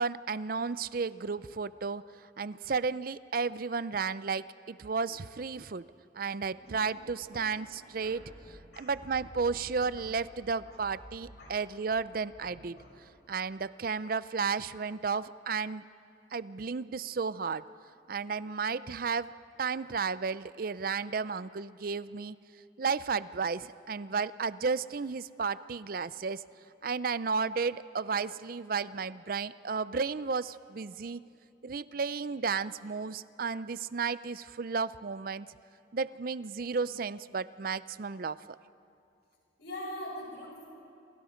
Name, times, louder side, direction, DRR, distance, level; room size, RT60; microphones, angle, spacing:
voice 1, 0.0-2.0 2.4-5.8 6.1-8.2 8.5-12.8 13.3-15.8 16.3-17.6 18.1-19.3 19.6-22.4 22.8-26.4 26.8-31.2 31.6-35.5 35.9-38.4, right 5 dB, 50° right, 16 dB, 0.5 m, -33 dB
sound 1, 6.6-13.5, equal, 40° left, 7.6 m, -54 dB
voice 2, 39.6-40.7, left 1 dB, 60° left, -2 dB, 7.2 m, -42 dB
28.0 x 27.0 x 5.1 m, 2.5 s
head